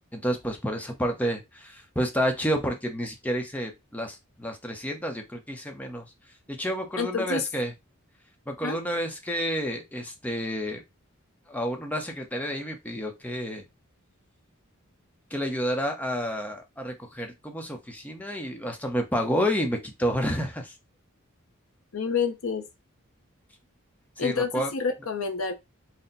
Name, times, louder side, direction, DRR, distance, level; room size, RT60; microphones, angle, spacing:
voice 1, 0.1-6.1 6.5-7.7 8.5-10.8 11.5-13.6 15.3-20.7 24.2-24.7, equal, 5° left, 0.7 m, -30 dB
voice 2, 7.0-7.5 8.6-8.8 21.9-22.6 24.2-25.5, left 5 dB, 85° left, 0.7 m, -28 dB
4.2 x 2.1 x 3.9 m
head